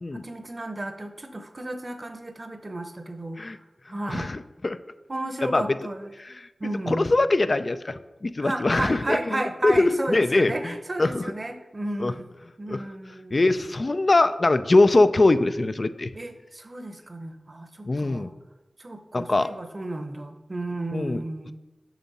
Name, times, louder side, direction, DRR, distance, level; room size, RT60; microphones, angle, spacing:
voice 1, 0.1-3.4 3.9-4.3 5.1-6.1 6.6-7.1 8.4-12.3 12.6-13.7 16.1-18.3 18.8-21.5, right 1 dB, 45° right, 8 dB, 0.8 m, -33 dB
voice 2, 4.1-4.8 5.4-5.7 6.2-6.5 6.9-10.7 11.0-11.2 12.0-12.1 12.7-12.8 13.3-16.1 17.9-18.3 19.1-19.5 20.9-21.2, left 2 dB, 50° left, 11 dB, 0.3 m, -22 dB
7.2 x 6.0 x 4.1 m, 1.1 s
wide cardioid pair, 50°, 0 cm